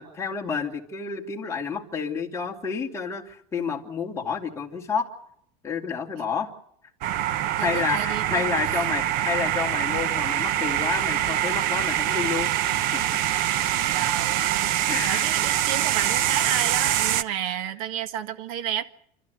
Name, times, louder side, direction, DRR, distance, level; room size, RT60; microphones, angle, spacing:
voice 1, 0.0-5.1 5.6-6.5 7.2-12.5 12.9-13.0 14.9-15.3, left 6 dB, 15° left, 2.7 m, -30 dB
sound 1, 7.0-17.2, right 12 dB, 55° right, 0.9 m, -24 dB
voice 2, 7.6-8.9 13.9-14.7 15.0-18.8, right 9 dB, 80° right, 1.7 m, -31 dB
28.5 x 13.0 x 9.4 m
cardioid pair, 150°, 18 cm